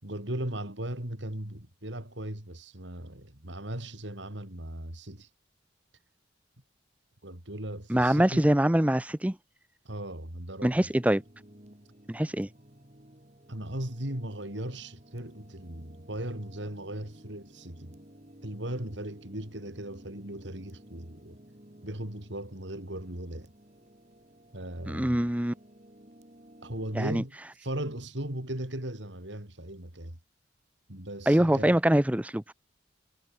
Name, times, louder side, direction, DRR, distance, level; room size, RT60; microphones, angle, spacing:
voice 1, 0.0-5.3 7.2-8.6 9.8-10.9 13.5-18.0 18.4-21.4 21.8-23.5 24.5-25.3 26.6-30.2 30.9-31.8, right 1 dB, 65° right, 4.2 m, -37 dB
voice 2, 7.9-9.4 10.6-11.2 12.1-12.5 24.9-25.5 27.0-27.2 31.3-32.5, right 1 dB, 5° right, 0.6 m, -24 dB
sound 1, 10.6-27.0, right 1 dB, 35° right, 3.1 m, -54 dB
head